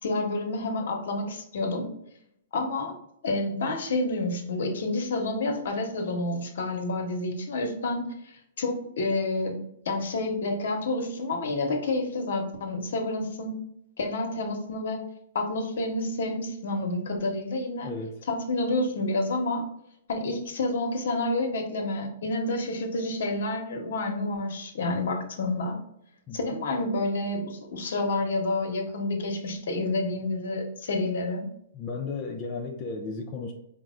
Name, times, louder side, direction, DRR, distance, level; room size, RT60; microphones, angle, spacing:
voice 1, 0.0-1.9 2.5-2.9 3.2-8.1 8.6-9.6 9.8-13.6 14.0-15.0 15.3-17.9 18.3-19.6 20.1-25.8 26.3-31.4, left 2 dB, 70° left, 0.9 m, -29 dB
voice 2, 17.8-18.2 26.3-26.4 31.7-33.5, left 4 dB, 30° left, 0.5 m, -34 dB
4.5 x 2.1 x 3.6 m
hypercardioid pair, 145°, 0 cm